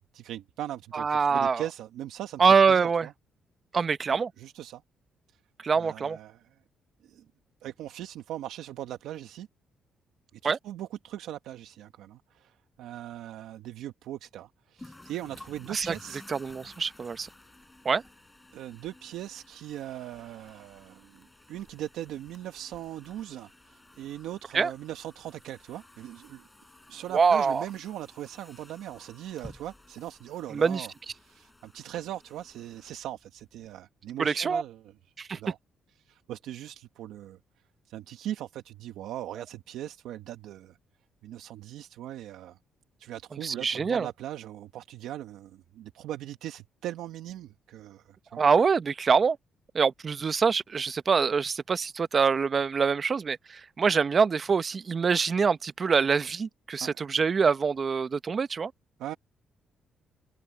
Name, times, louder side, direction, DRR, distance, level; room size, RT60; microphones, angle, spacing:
voice 1, 0.1-2.4 2.7-3.1 4.1-4.8 5.7-6.4 7.0-7.2 7.6-9.5 10.4-16.2 18.5-26.5 26.9-34.9 35.3-35.6 36.0-37.4 37.9-40.8 41.2-42.6 43.0-48.4 56.8-57.0 59.0-59.2, right 12 dB, 85° right, 1.1 m, -40 dB
voice 2, 0.9-1.6 2.4-3.1 3.7-4.3 5.6-6.2 10.4-10.6 15.7-15.9 16.3-17.3 17.8-18.0 24.5-24.7 27.1-27.6 30.5-30.9 34.2-34.6 35.2-35.4 43.4-44.1 48.3-49.4 49.7-58.7, right 5 dB, 40° right, 0.8 m, -25 dB
sound 1, 14.8-33.7, left 2 dB, 15° left, 3.8 m, -54 dB
cardioid pair, 90°, 0 cm